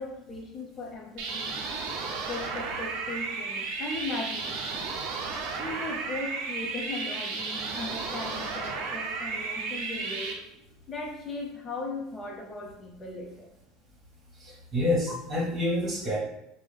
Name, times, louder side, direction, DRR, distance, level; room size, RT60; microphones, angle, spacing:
voice 1, 0.0-1.6 2.3-4.9 5.6-10.4 10.9-13.5 15.1-15.2, left 2 dB, 35° left, 0 dB, 0.8 m, -38 dB
sound 1, 1.2-10.3, right 4 dB, 65° right, 0.5 m, -33 dB
voice 2, 14.4-16.2, left 1 dB, 20° right, -5 dB, 1.3 m, -28 dB
3.1 x 2.2 x 3.4 m, 0.83 s
hypercardioid pair, 75°, 0 cm